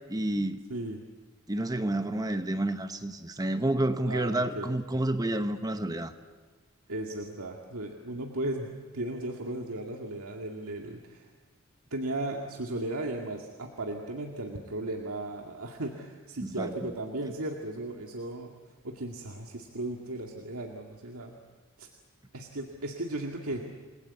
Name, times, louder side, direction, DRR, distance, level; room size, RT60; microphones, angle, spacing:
voice 1, 0.1-0.6 1.5-6.1 16.4-16.7, right 1 dB, 15° right, 9 dB, 0.9 m, -29 dB
voice 2, 0.7-1.0 4.1-4.7 6.9-11.3 11.9-18.5 18.8-21.4 21.8-21.9 22.3-23.6, right 1 dB, 85° right, 1 dB, 2.2 m, -36 dB
29.5 x 20.5 x 8.4 m, 1.3 s
head